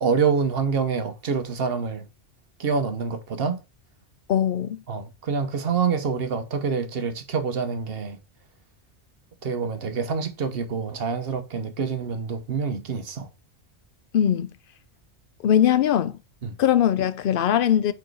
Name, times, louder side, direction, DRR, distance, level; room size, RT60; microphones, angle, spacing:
voice 1, 0.0-2.1 2.6-3.6 4.9-8.2 9.4-13.3 16.4-16.6, right 5 dB, 60° right, 1.1 m, -26 dB
voice 2, 4.3-4.8 14.1-14.5 15.4-16.2 16.6-17.9, left 10 dB, 60° left, 0.7 m, -20 dB
4.7 x 4.6 x 4.5 m
omnidirectional pair, 1.2 m